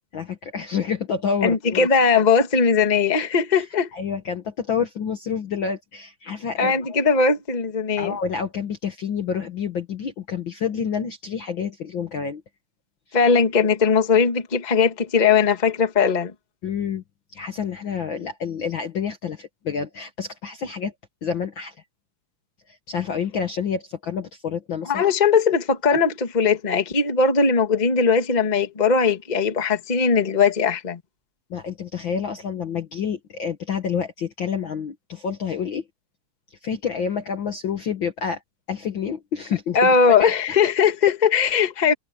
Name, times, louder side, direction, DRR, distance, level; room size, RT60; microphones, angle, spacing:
voice 1, 0.1-1.9 3.9-7.0 8.0-12.4 16.6-17.0 17.3-20.9 21.2-21.7 22.7-25.0 25.9-26.0 31.5-35.8 36.6-38.4 38.7-39.9 40.2-40.4, left 6 dB, 55° left, 1.6 m, -28 dB
voice 2, 1.4-3.9 6.6-8.2 13.1-16.3 24.8-31.0 39.7-41.9, left 5 dB, 20° left, 1.3 m, -19 dB
omnidirectional pair, 3.3 m